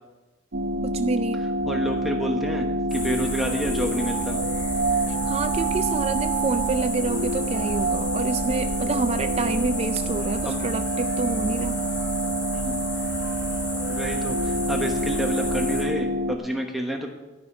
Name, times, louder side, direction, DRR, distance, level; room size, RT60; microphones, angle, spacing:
sound 1, 0.5-16.4, right 2 dB, 65° right, 0.8 m, -27 dB
voice 1, 0.8-1.4 5.1-11.8, right 3 dB, 35° right, 9 dB, 0.4 m, -28 dB
voice 2, 1.7-4.4 10.4-10.6 12.5-12.8 13.9-17.1, right 1 dB, ahead, 1 dB, 1.1 m, -29 dB
sound 2, 2.9-15.8, left 1 dB, 85° left, 4.2 m, -33 dB
12.5 x 5.7 x 8.4 m, 1.1 s
head